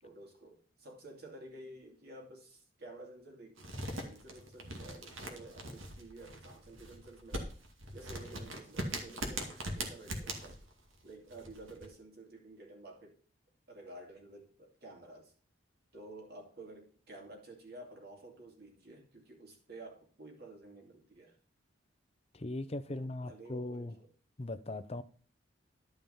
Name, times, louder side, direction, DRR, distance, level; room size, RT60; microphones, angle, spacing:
voice 1, 0.0-7.5 7.9-10.6 11.0-13.2 13.7-15.3 15.9-21.4 22.9-24.1, right 2 dB, 50° right, 2.7 m, -52 dB
sound 1, 3.6-11.9, right 1 dB, 80° right, 2.2 m, -41 dB
voice 2, 22.3-23.9 24.4-25.0, left 2 dB, 30° left, 0.6 m, -39 dB
12.0 x 5.4 x 5.5 m
head